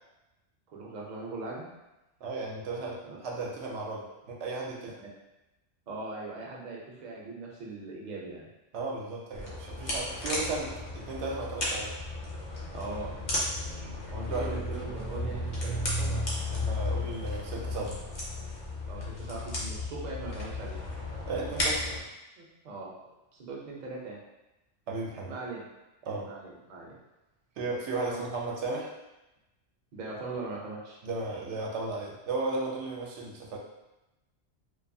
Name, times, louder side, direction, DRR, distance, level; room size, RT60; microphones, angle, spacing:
voice 1, 0.7-1.7 3.0-3.2 5.9-8.4 12.7-13.1 14.1-16.2 18.8-20.8 22.4-22.9 23.3-24.2 25.3-25.6 26.2-27.0 28.1-28.2 29.9-31.0, right 3 dB, 50° right, -3 dB, 0.6 m, -40 dB
voice 2, 2.2-4.9 8.7-11.9 14.3-14.5 16.5-18.0 21.3-21.9 24.9-25.3 26.1-26.3 27.6-28.9 31.0-33.6, right 3 dB, 80° right, -2 dB, 0.9 m, -35 dB
sound 1, 9.3-22.0, left 2 dB, 45° left, 0.7 m, -34 dB
2.5 x 2.3 x 2.6 m, 0.99 s
omnidirectional pair, 1.2 m